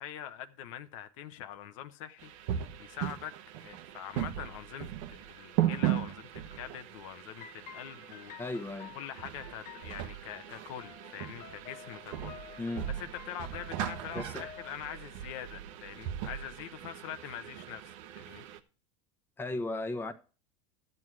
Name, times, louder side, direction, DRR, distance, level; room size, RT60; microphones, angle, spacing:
voice 1, 0.0-3.3 3.6-8.4 8.9-12.7 13.0-18.5, left 10 dB, 75° left, 0.9 m, -44 dB
sound 1, 2.2-18.6, right 12 dB, 70° right, 1.0 m, -38 dB
sound 2, 7.3-14.7, left 10 dB, 50° left, 0.8 m, -51 dB
voice 2, 8.4-8.9 12.6-12.9 14.1-14.4 19.4-20.1, left 2 dB, 15° left, 1.1 m, -35 dB
12.0 x 7.9 x 4.7 m
supercardioid pair, 110°, 17 cm